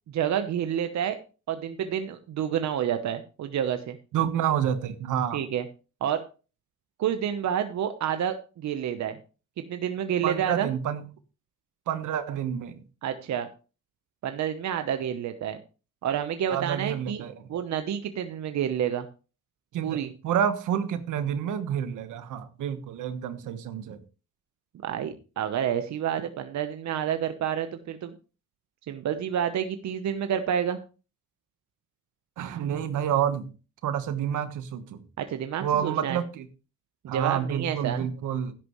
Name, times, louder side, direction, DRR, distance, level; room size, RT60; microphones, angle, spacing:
voice 1, 0.1-1.2 1.5-4.0 5.3-5.6 6.0-6.2 7.0-9.2 9.7-10.7 13.0-13.5 14.2-15.6 16.0-17.2 17.5-19.1 19.8-20.1 24.8-28.1 28.9-30.8 35.2-36.2 37.0-38.1, right 9 dB, 65° right, 8 dB, 1.0 m, -29 dB
voice 2, 4.1-5.4 10.2-11.0 11.9-12.8 16.5-17.5 19.7-24.0 32.4-33.5 33.8-35.1 35.6-36.5 37.1-38.5, right 9 dB, 80° right, 10 dB, 1.4 m, -29 dB
12.0 x 11.0 x 3.2 m, 0.34 s
cardioid pair, 90°, 30 cm